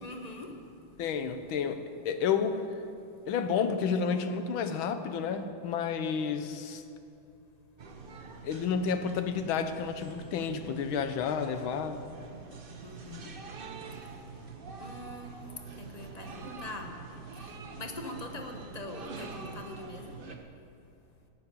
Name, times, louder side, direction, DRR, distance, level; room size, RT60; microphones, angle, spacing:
voice 1, 0.0-1.0 12.8-13.3 14.8-15.5 15.8-17.0 17.3-20.2, left 2 dB, 30° left, 4 dB, 0.8 m, -43 dB
voice 2, 1.0-2.6 3.3-6.8 8.4-12.0, left 6 dB, 90° left, 9 dB, 1.7 m, -31 dB
sound 1, 7.8-20.3, right 4 dB, 40° right, 0.8 m, -45 dB
12.5 x 7.0 x 9.7 m, 2.5 s
omnidirectional pair, 2.1 m